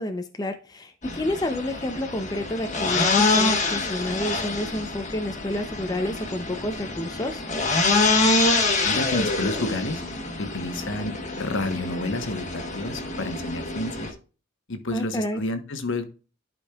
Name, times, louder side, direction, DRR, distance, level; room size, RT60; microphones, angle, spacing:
voice 1, 0.0-7.4 14.9-15.4, left 1 dB, 20° left, 6 dB, 0.6 m, -29 dB
sound 1, 1.0-14.1, left 3 dB, 35° left, 1.5 m, -26 dB
voice 2, 8.8-10.0 10.4-14.1 14.7-16.1, left 2 dB, 65° left, 8 dB, 1.2 m, -30 dB
11.5 x 5.3 x 2.4 m, 0.34 s
head